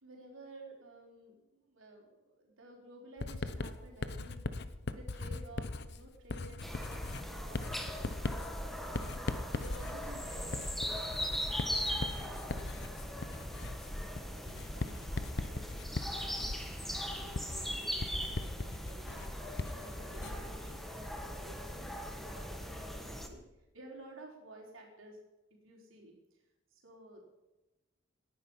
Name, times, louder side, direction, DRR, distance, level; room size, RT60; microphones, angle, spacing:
voice 1, 0.0-4.4 4.8-13.4 14.2-23.4 23.7-25.2 25.5-26.4 26.7-27.3, right 1 dB, 85° right, -1 dB, 4.3 m, -54 dB
Writing, 3.2-20.5, left 2 dB, 55° left, 0.8 m, -40 dB
sound 1, 6.6-23.3, equal, ahead, 1.6 m, -40 dB
18.5 x 11.0 x 5.5 m, 1.0 s
head